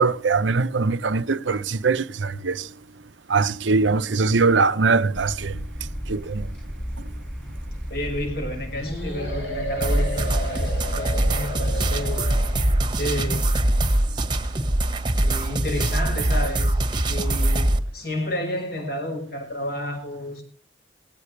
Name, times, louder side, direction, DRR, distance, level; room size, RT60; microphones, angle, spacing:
voice 1, 0.0-2.7 3.3-5.6 6.1-6.5, right 4 dB, 75° right, 0.8 m, -21 dB
sound 1, 5.1-12.9, equal, 5° left, 2.7 m, -34 dB
voice 2, 7.9-12.2 13.0-13.5 14.4-14.5 15.2-16.8 17.1-20.4, left 1 dB, 50° left, 5.6 m, -31 dB
sound 2, 8.7-12.9, equal, 70° left, 6.4 m, -33 dB
sound 3, 9.8-17.8, right 1 dB, 25° right, 1.3 m, -23 dB
18.5 x 17.0 x 3.3 m
head